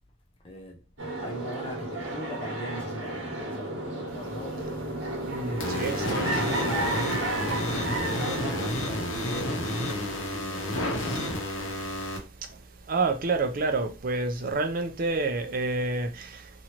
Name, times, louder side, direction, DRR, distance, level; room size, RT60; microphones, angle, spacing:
voice 1, 0.4-0.8 1.2-5.1 5.4-7.0 7.6-11.2, equal, 30° left, 0.6 m, -41 dB
sound 1, 1.0-8.7, right 1 dB, 70° right, 1.1 m, -32 dB
voice 2, 5.2-6.4 12.9-16.5, right 3 dB, 45° right, 0.5 m, -28 dB
sound 2, 5.6-12.2, left 1 dB, 85° left, 0.9 m, -30 dB
3.0 x 2.5 x 2.9 m
head